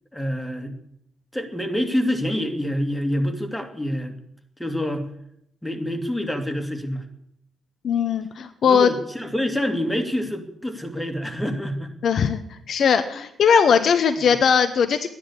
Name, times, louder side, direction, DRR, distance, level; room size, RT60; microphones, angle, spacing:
voice 1, 0.1-0.8 1.3-4.2 4.6-5.1 5.6-7.1 8.6-11.9 14.2-14.3, equal, 5° left, 5 dB, 2.6 m, -26 dB
voice 2, 7.8-8.9 12.0-12.4 12.7-15.1, left 7 dB, 55° left, 10 dB, 0.9 m, -19 dB
13.0 x 10.0 x 8.6 m, 0.74 s
figure-of-eight pair, 45°, 0 cm